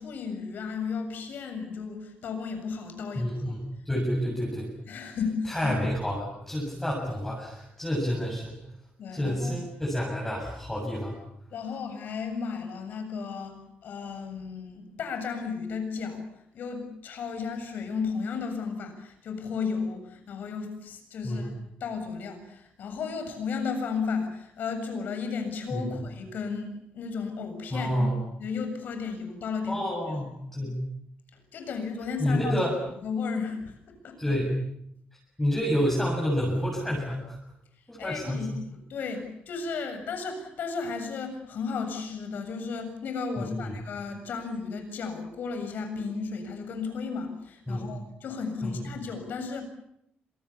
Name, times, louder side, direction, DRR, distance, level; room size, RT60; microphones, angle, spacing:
voice 1, 0.0-3.5 4.9-5.7 9.0-9.5 11.5-16.3 16.5-21.5 21.8-26.7 26.9-29.8 30.1-30.3 31.3-32.6 32.9-33.8 34.0-34.2 38.0-49.7, left 5 dB, 60° left, 7 dB, 7.2 m, -34 dB
voice 2, 3.2-4.7 5.5-8.6 9.1-11.2 21.2-21.5 25.7-25.9 27.7-28.2 29.7-30.7 32.2-32.7 34.2-34.6 35.4-37.4 37.9-38.5 43.4-43.7 47.7-47.9 48.6-48.7, equal, 10° left, -3 dB, 7.4 m, -29 dB
28.0 x 27.0 x 7.3 m, 0.75 s
cardioid pair, 170°, 4 cm